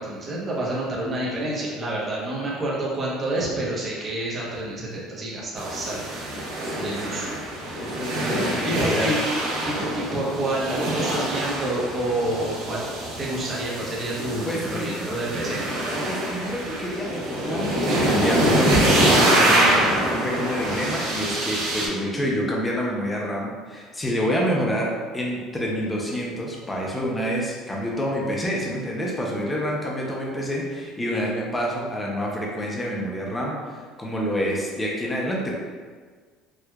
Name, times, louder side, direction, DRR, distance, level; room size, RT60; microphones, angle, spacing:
voice 1, 0.0-6.2 6.8-7.4 8.6-9.2 9.6-15.6 17.9-18.0, right 1 dB, 20° right, -6 dB, 0.8 m, -28 dB
sound 1, 5.6-21.9, right 1 dB, 85° right, 1.0 m, -24 dB
voice 2, 6.6-7.2 7.8-9.1 14.5-15.2 16.1-35.6, equal, 10° left, -3 dB, 0.5 m, -28 dB
4.5 x 2.3 x 2.3 m, 1.5 s
cardioid pair, 150°, 0 cm